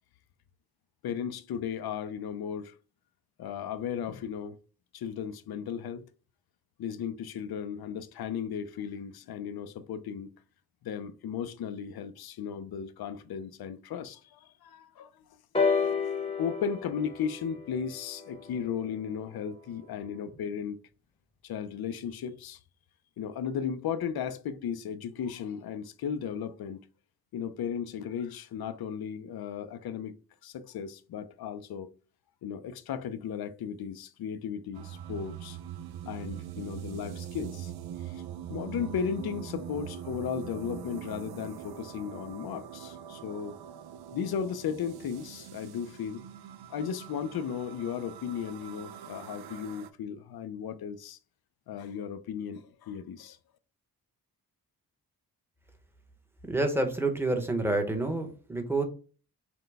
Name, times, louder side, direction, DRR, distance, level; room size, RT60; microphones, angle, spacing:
voice 1, 1.0-2.8 3.4-4.6 4.9-6.0 6.8-10.3 10.8-15.2 16.4-20.8 21.4-22.6 23.2-26.8 27.3-30.1 30.4-31.9 32.4-35.6 36.1-37.7 38.0-38.2 38.5-43.6 44.1-46.2 46.7-51.2 51.7-53.4, left 7 dB, 75° left, 0.6 m, -35 dB
sound 1, 15.5-19.4 20.3-20.4, left 5 dB, 15° left, 0.9 m, -31 dB
sound 2, 34.7-49.9, right 10 dB, 80° right, 0.5 m, -43 dB
voice 2, 56.5-58.8, right 2 dB, 5° right, 1.0 m, -28 dB
5.8 x 2.2 x 3.4 m
cardioid pair, 95°, 37 cm